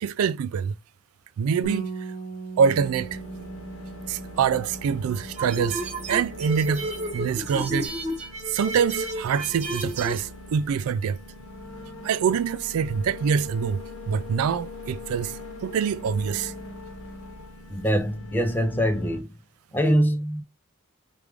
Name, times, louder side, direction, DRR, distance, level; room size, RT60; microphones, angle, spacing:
voice 1, 0.0-0.7 1.4-1.9 2.6-3.2 4.1-5.8 6.1-7.9 8.5-11.2 12.0-16.5, right 7 dB, 85° right, 0.3 m, -25 dB
Bass guitar, 1.6-6.3 6.6-7.9, right 4 dB, 35° left, 1.0 m, -39 dB
sound 1, 2.7-19.2, left 2 dB, 70° left, 1.0 m, -41 dB
sound 2, 5.3-10.3, right 1 dB, 30° right, 1.1 m, -31 dB
voice 2, 17.7-19.3 19.7-20.4, equal, 10° left, 0.5 m, -23 dB
4.6 x 2.5 x 3.4 m
head